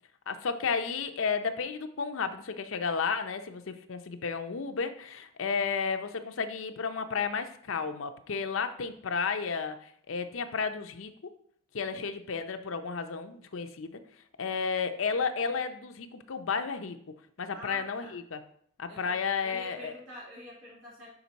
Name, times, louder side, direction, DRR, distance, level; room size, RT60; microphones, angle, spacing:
voice 1, 0.3-11.1 11.7-14.0 14.4-17.0 17.4-18.4 18.8-19.9, left 5 dB, 80° left, 8 dB, 0.6 m, -32 dB
voice 2, 17.5-18.2 18.9-21.1, equal, 80° right, -6 dB, 2.5 m, -47 dB
6.0 x 5.1 x 4.0 m, 0.63 s
head